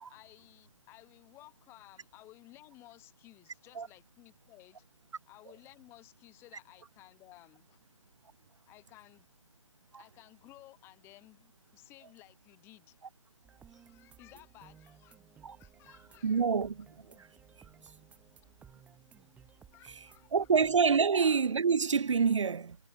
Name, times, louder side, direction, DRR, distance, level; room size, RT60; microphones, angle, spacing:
voice 1, 0.1-4.8 5.3-7.8 8.7-9.3 10.0-13.0 13.7-15.2 15.6-16.4 19.7-20.5, left 17 dB, 15° left, 2.6 m, -57 dB
sound 1, 13.4-20.8, right 7 dB, 10° right, 6.9 m, -59 dB
voice 2, 16.2-17.3 20.3-22.8, right 5 dB, 75° right, 0.5 m, -27 dB
figure-of-eight pair, 150°, 16 cm